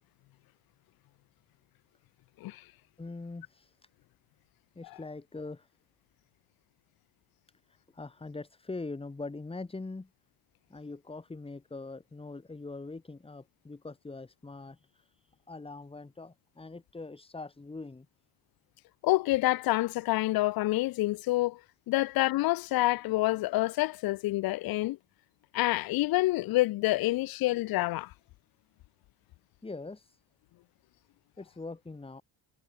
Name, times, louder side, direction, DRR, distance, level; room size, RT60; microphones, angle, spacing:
voice 1, 3.0-3.8 4.8-5.7 7.7-10.1 10.7-18.1 29.6-30.2 31.4-32.2, left 3 dB, 15° left, 4.0 m, -42 dB
voice 2, 19.0-21.6 21.9-25.0 25.5-28.1, left 18 dB, 60° left, 0.7 m, -27 dB
cardioid pair, 135°, 40 cm